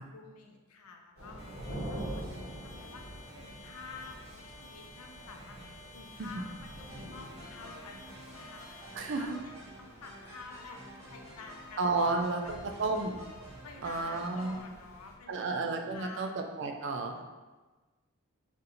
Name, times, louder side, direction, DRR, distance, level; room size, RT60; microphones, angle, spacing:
voice 1, 0.0-12.5 13.6-16.4 17.1-17.2, left 4 dB, 90° left, 3 dB, 0.5 m, -50 dB
sound 1, 1.2-15.1, right 1 dB, 65° left, 1.2 m, -47 dB
sound 2, 1.4-9.3, left 1 dB, 25° left, 0.6 m, -53 dB
sound 3, 6.9-14.6, equal, 15° right, 0.8 m, -50 dB
voice 2, 8.9-9.4 11.8-13.2 13.8-14.6 15.3-17.2, right 3 dB, 55° right, 4 dB, 0.3 m, -32 dB
2.6 x 2.6 x 4.1 m, 1.2 s
head